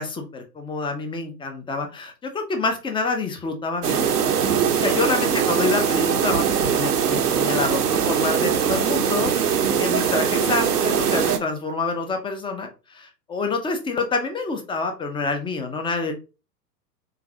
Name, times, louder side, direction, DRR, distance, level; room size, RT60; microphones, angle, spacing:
voice 1, 0.0-4.1 4.7-16.1, left 3 dB, 10° left, 5 dB, 0.7 m, -27 dB
sound 1, 3.8-11.4, right 7 dB, 70° right, 1.0 m, -21 dB
3.9 x 3.8 x 2.9 m, 0.30 s
figure-of-eight pair, 105°, 49 cm